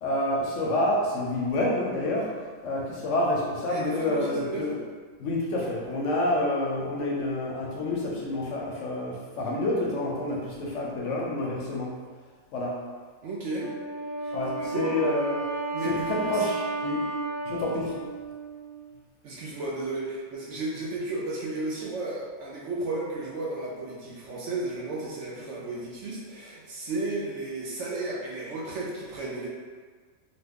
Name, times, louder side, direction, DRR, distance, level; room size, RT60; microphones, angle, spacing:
voice 1, 0.0-2.3 2.6-4.7 5.2-11.9 12.5-12.8 14.3-15.4 15.8-17.0 17.5-17.9, left 1 dB, 65° left, -3 dB, 0.9 m, -28 dB
voice 2, 3.7-4.8 13.2-13.7 14.2-15.0 15.7-16.5 17.8-18.0 19.2-29.5, right 2 dB, 65° right, -4 dB, 0.8 m, -33 dB
Wind instrument woodwind instrument, 13.6-19.0, right 2 dB, 50° left, 0.4 m, -33 dB
3.0 x 2.1 x 3.5 m, 1.5 s
omnidirectional pair, 1.5 m